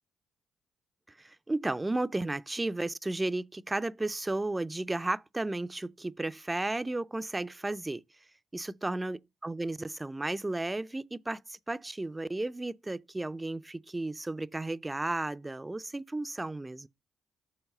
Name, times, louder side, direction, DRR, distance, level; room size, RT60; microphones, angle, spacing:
voice 1, 1.2-8.0 8.5-16.9, right 2 dB, 20° right, 0.4 m, -34 dB
7.1 x 3.1 x 5.5 m
hypercardioid pair, 50°, 0 cm